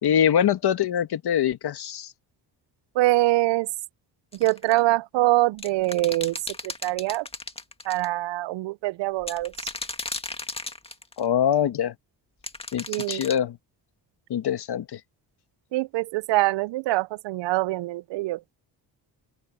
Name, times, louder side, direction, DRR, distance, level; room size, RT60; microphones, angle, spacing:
voice 1, 0.0-2.1 11.2-11.9 12.7-13.6 14.3-15.0, left 9 dB, 65° left, 2.0 m, -24 dB
voice 2, 3.0-3.7 4.3-6.4 6.6-7.3 7.9-9.5 12.9-13.2 15.7-18.5, right 18 dB, 80° right, 0.6 m, -24 dB
sound 1, 4.3-4.8 5.6-8.1 9.2-11.2 12.4-13.4, left 2 dB, 15° left, 2.0 m, -35 dB
open air
cardioid pair, 85°, 42 cm